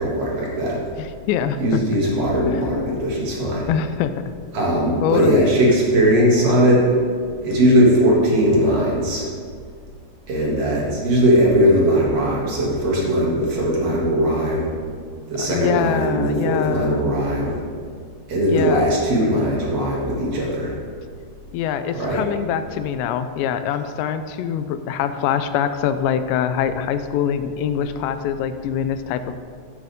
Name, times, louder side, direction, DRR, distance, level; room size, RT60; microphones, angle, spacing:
voice 1, 0.0-0.8 1.6-3.7 4.5-6.8 7.4-9.3 10.3-14.7 15.3-17.6 18.3-20.7 21.9-22.2, equal, 45° right, -4 dB, 3.0 m, -19 dB
voice 2, 1.0-1.8 2.4-3.0 3.7-4.3 5.0-5.6 15.4-17.1 18.5-18.9 21.5-29.4, left 8 dB, 90° left, 10 dB, 2.9 m, -24 dB
15.5 x 9.1 x 3.6 m, 2.1 s
omnidirectional pair, 5.0 m